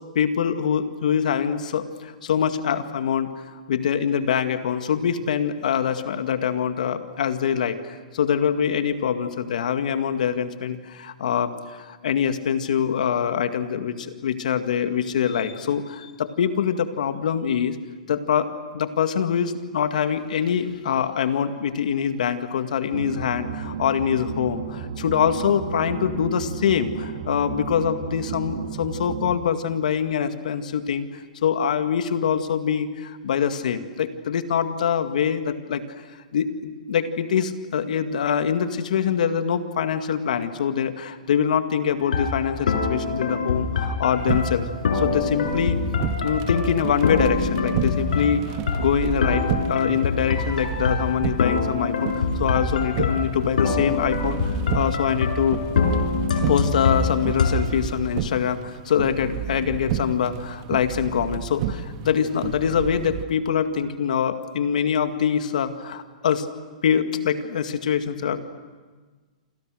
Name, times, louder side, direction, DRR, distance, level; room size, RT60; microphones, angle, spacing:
voice 1, 0.1-3.3 3.7-17.8 18.1-35.8 36.3-44.7 44.9-45.8 46.2-48.4 48.8-55.6 56.5-66.5 66.8-68.4, left 8 dB, 70° left, 8 dB, 2.1 m, -24 dB
sound 1, 22.9-29.4, right 7 dB, 75° right, 2.5 m, -33 dB
sound 2, 42.0-57.5, left 5 dB, 90° left, 5.9 m, -25 dB
sound 3, 44.2-63.2, right 9 dB, 35° right, 1.8 m, -31 dB
28.0 x 27.0 x 6.5 m, 1.4 s
hypercardioid pair, 155°, 4 cm